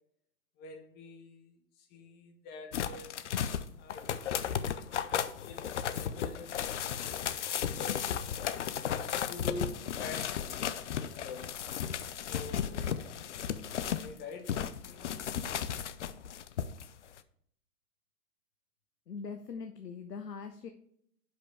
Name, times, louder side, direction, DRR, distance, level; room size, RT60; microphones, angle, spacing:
voice 1, 0.6-3.1 3.8-4.6 5.4-7.2 7.6-8.0 8.8-11.5 12.3-12.9 13.8-15.2, left 3 dB, 20° left, 4 dB, 1.1 m, -47 dB
sound 1, 2.7-14.1 14.5-16.9 17.2-17.3, left 8 dB, 50° left, 0.6 m, -35 dB
voice 2, 19.1-20.7, left 5 dB, 75° left, 6 dB, 0.9 m, -42 dB
9.8 x 5.8 x 3.4 m, 0.67 s
figure-of-eight pair, 130°, 49 cm